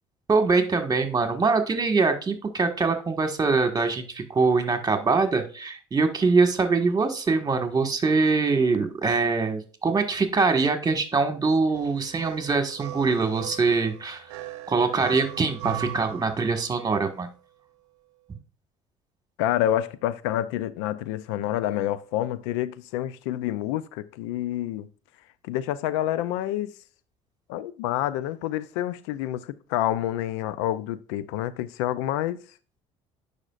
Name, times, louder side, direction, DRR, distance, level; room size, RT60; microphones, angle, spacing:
voice 1, 0.3-14.3 14.7-17.3, right 4 dB, 25° right, 1.6 m, -23 dB
sound 1, 11.7-16.9, right 13 dB, 90° right, 0.7 m, -39 dB
voice 2, 19.4-24.9 25.4-26.7 27.5-32.4, left 13 dB, 85° left, 0.4 m, -28 dB
9.8 x 5.2 x 2.4 m
supercardioid pair, 75°, 15 cm